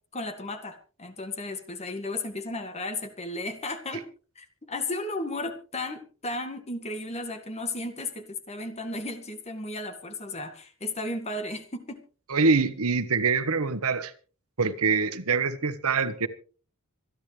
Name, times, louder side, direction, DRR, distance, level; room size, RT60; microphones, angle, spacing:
voice 1, 0.1-4.1 4.4-12.0, left 2 dB, 30° left, 1.9 m, -34 dB
voice 2, 12.3-14.1 14.6-16.3, right 4 dB, 85° right, 1.2 m, -24 dB
26.0 x 10.5 x 3.3 m
head